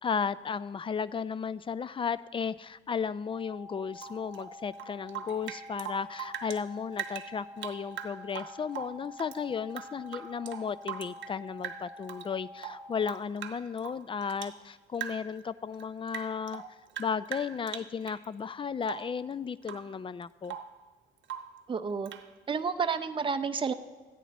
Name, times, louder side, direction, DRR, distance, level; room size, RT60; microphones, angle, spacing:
voice 1, 0.0-16.6 17.0-20.6, left 6 dB, 25° left, 18 dB, 0.4 m, -34 dB
sound 1, 3.3-13.3, left 1 dB, 10° left, 2.4 m, -48 dB
Rain / Drip, 4.0-6.6 6.9-9.4 9.7-11.4 11.6-12.3 12.6-14.6 14.9-15.4 15.7-18.2 18.8-19.2 19.6-19.9 20.2-20.8 21.2-21.6 22.1-22.3, right 9 dB, 70° right, 0.9 m, -41 dB
voice 2, 21.7-22.1 22.5-23.7, right 5 dB, 25° right, 8 dB, 0.6 m, -30 dB
14.0 x 10.0 x 4.1 m, 1.3 s
cardioid pair, 90°, 20 cm